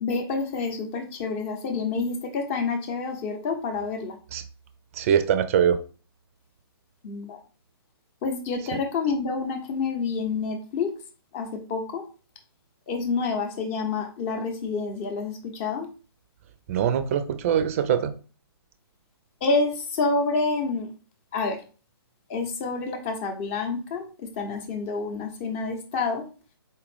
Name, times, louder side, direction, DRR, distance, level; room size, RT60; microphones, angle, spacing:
voice 1, 0.0-4.2 7.0-7.4 8.2-10.9 11.3-12.0 12.9-15.9 19.4-20.9 21.3-21.6 22.3-26.3, left 4 dB, 30° left, 5 dB, 0.8 m, -28 dB
voice 2, 5.0-5.8 16.7-18.1, right 8 dB, 35° right, 11 dB, 0.4 m, -22 dB
4.2 x 2.4 x 3.3 m, 0.36 s
hypercardioid pair, 135°, 13 cm